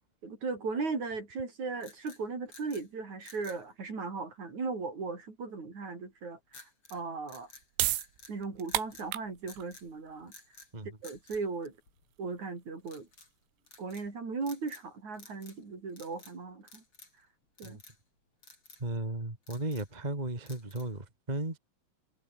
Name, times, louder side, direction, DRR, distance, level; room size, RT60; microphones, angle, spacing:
voice 1, 0.2-6.6 6.9-7.5 8.3-10.3 11.0-11.7 12.2-13.1 13.8-16.8 17.6-17.8, right 4 dB, 35° right, 6.4 m, -37 dB
sound 1, 1.8-2.9 3.2-3.6 6.5-7.0 7.3-8.4 8.6-9.1 9.5-9.9 10.3-10.7 11.0-12.2 12.8-13.3 13.7-14.1 14.4-14.9 15.1-15.6 15.9-16.4 16.7-17.2 17.6-18.0 18.4-18.8 19.3-20.0 20.5-21.0, left 3 dB, 25° left, 7.6 m, -54 dB
sound 2, 7.4-14.1, right 15 dB, 80° right, 4.1 m, -37 dB
voice 2, 18.8-21.6, right 2 dB, 15° right, 1.7 m, -35 dB
omnidirectional pair, 5.9 m